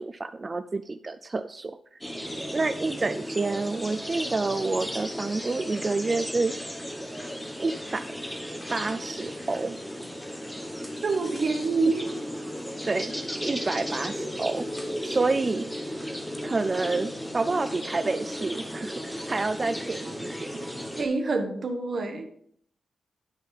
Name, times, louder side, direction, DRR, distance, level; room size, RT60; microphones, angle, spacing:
voice 1, 0.0-1.7 2.5-6.5 7.6-8.0 8.7-9.8 12.8-13.1 13.4-14.6 15.0-15.7 16.4-20.5, right 3 dB, 30° right, 10 dB, 0.3 m, -28 dB
sound 1, 2.0-21.0, equal, 5° left, 0.9 m, -35 dB
voice 2, 11.0-12.1 21.0-22.4, right 3 dB, 50° right, 4 dB, 1.2 m, -26 dB
11.5 x 4.1 x 4.1 m, 0.66 s
wide cardioid pair, 115°, 0 cm